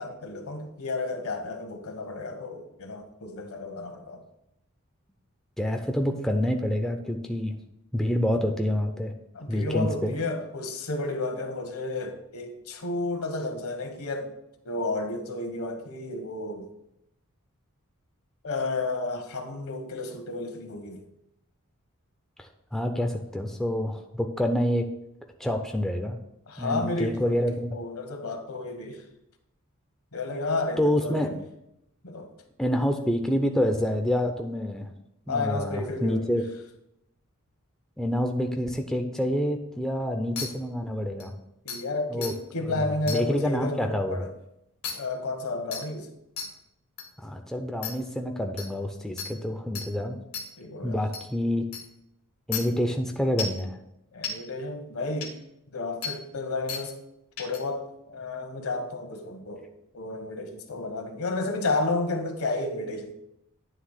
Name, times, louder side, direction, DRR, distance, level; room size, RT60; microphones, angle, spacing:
voice 1, 0.0-4.2 9.3-14.3 14.6-16.7 18.4-21.0 26.5-27.5 27.7-29.0 30.1-31.4 32.0-32.3 35.3-36.4 41.6-44.3 44.9-46.1 50.6-51.0 54.1-55.3 55.7-56.9 57.4-59.6 59.9-63.1, left 2 dB, 70° left, 5 dB, 1.1 m, -32 dB
voice 2, 5.6-7.5 7.9-9.1 9.5-10.1 22.4-24.9 25.4-26.2 26.6-27.8 30.8-31.3 32.6-34.9 35.3-36.4 38.0-41.3 42.1-42.3 42.6-44.3 47.2-50.2 50.8-51.6 52.5-53.8, equal, ahead, 3 dB, 0.5 m, -27 dB
sound 1, 40.4-40.5 41.2-41.3 41.7-41.8 42.2-42.3 43.1-43.2 44.8-44.9 45.7-45.8 46.4-46.5 47.0-47.1 47.8-47.9 48.6-48.7 49.2-49.3 49.7-49.9 50.3-50.4 51.1-51.2 51.7-51.8 52.5-52.6 53.4-53.6 54.2-54.3 55.2-55.3 56.0-56.1 56.7-56.8 57.4-57.6, left 6 dB, 85° left, 1.5 m, -32 dB
9.4 x 3.4 x 6.4 m, 0.83 s
head